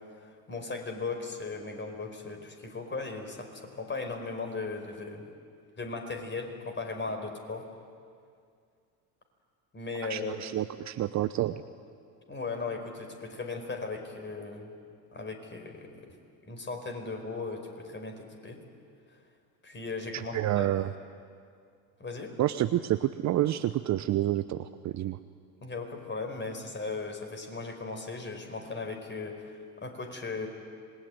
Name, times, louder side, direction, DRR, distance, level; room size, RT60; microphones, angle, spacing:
voice 1, 0.1-5.2 5.8-7.6 9.7-10.4 12.3-14.7 15.1-16.1 16.5-18.6 19.6-20.7 22.0-22.3 25.6-30.5, left 3 dB, 20° left, 4 dB, 5.1 m, -37 dB
voice 2, 10.1-11.6 20.1-20.9 22.4-25.2, right 13 dB, 35° right, 12 dB, 0.8 m, -29 dB
26.5 x 20.5 x 9.2 m, 2.3 s
hypercardioid pair, 70°, 48 cm